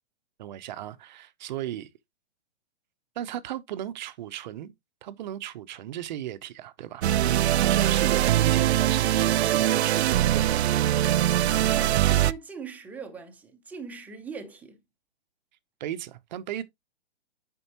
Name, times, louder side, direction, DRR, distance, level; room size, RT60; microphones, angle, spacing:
voice 1, 0.4-1.9 3.2-4.7 5.0-10.6 15.8-16.6, right 12 dB, 40° right, 0.7 m, -36 dB
sound 1, 7.0-12.3, right 12 dB, 70° right, 0.5 m, -22 dB
voice 2, 11.6-14.8, right 5 dB, 5° right, 0.7 m, -40 dB
8.0 x 5.3 x 2.9 m
hypercardioid pair, 145°, 34 cm